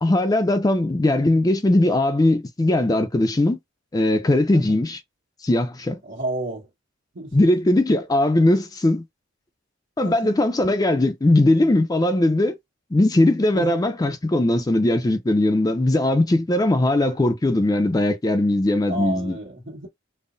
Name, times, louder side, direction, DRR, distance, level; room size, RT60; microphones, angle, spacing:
voice 1, 0.0-3.6 3.9-5.0 5.4-6.0 7.3-9.0 10.0-12.6 12.9-19.4, left 1 dB, 20° left, 0.4 m, -19 dB
voice 2, 6.0-6.7 7.1-7.3 10.0-10.4 13.5-13.8 18.9-19.9, right 1 dB, 85° right, 1.4 m, -31 dB
5.4 x 2.0 x 2.6 m
head